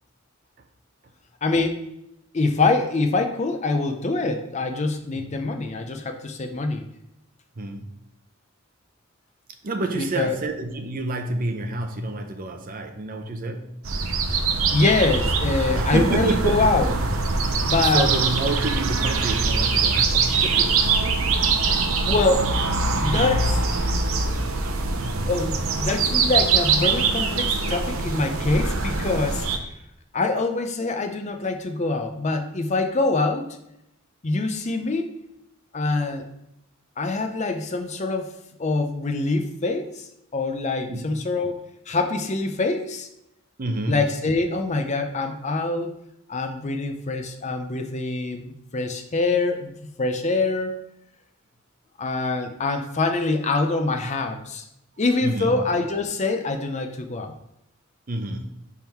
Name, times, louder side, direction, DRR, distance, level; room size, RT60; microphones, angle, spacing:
voice 1, 1.4-1.8 2.3-6.9 10.0-10.4 14.7-16.9 17.6-18.1 22.0-22.6 22.9-23.6 25.3-29.5 30.1-33.5 34.2-35.2 35.7-36.2 37.0-38.3 38.6-40.1 40.3-43.1 43.9-45.9 46.3-50.7 52.0-54.6 55.0-57.3, left 3 dB, 35° left, 0.6 m, -24 dB
voice 2, 7.6-8.0 9.6-13.8 15.7-17.0 17.8-21.6 25.0-25.3 40.9-41.1 43.6-44.1 55.2-55.6 58.1-58.5, right 2 dB, 45° right, 0.6 m, -29 dB
sound 1, 13.8-29.6, right 4 dB, 90° right, 0.7 m, -23 dB
6.0 x 3.6 x 4.5 m
head